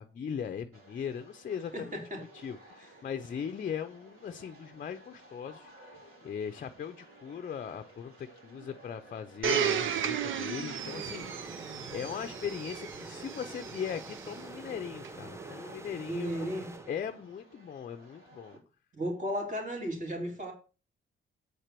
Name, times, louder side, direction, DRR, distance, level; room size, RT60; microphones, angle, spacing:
voice 1, 0.0-16.3 16.9-18.6, left 7 dB, 40° left, 0.6 m, -39 dB
sound 1, 0.7-18.6, right 2 dB, 85° right, 3.4 m, -55 dB
voice 2, 1.7-2.2 16.1-16.7 18.9-20.5, equal, 35° right, 3.0 m, -34 dB
Domestic sounds home sounds, 9.4-14.3 15.0-15.1, right 8 dB, 70° right, 0.7 m, -34 dB
sound 2, 10.8-17.4, right 3 dB, 15° right, 0.5 m, -46 dB
8.2 x 4.4 x 6.7 m
cardioid pair, 120°, 21 cm